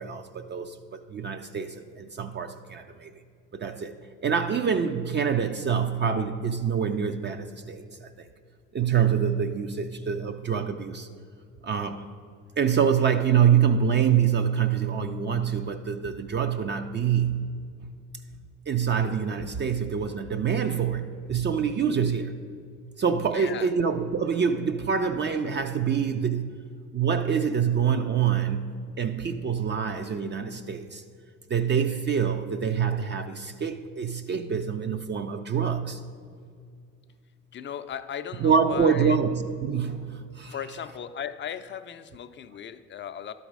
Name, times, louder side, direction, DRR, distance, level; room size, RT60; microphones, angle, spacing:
voice 1, 0.0-3.1 3.5-3.9 4.2-8.3 8.7-11.1 11.6-12.1 12.6-17.5 18.7-22.3 23.0-26.5 26.9-28.7 29.0-31.0 31.5-36.0 38.4-40.6, right 7 dB, 30° right, 0.4 m, -26 dB
voice 2, 23.3-23.7 37.5-39.2 40.5-43.3, left 8 dB, 35° left, 0.4 m, -37 dB
11.5 x 4.1 x 4.8 m
hypercardioid pair, 65°, 36 cm